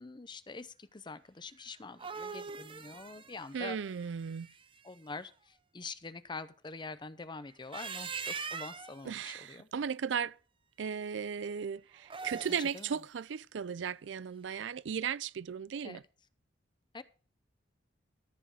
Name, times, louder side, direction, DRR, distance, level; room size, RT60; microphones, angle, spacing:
voice 1, 0.0-3.8 4.8-9.7 12.3-13.0 15.8-16.0 16.9-17.0, left 3 dB, 25° left, 0.6 m, -45 dB
sound 1, 1.7-4.8 7.5-9.0 12.0-12.9, right 5 dB, 30° right, 0.7 m, -42 dB
voice 2, 3.5-4.5 9.0-10.4 10.8-16.0, right 7 dB, 70° right, 0.4 m, -36 dB
14.0 x 5.2 x 6.3 m
head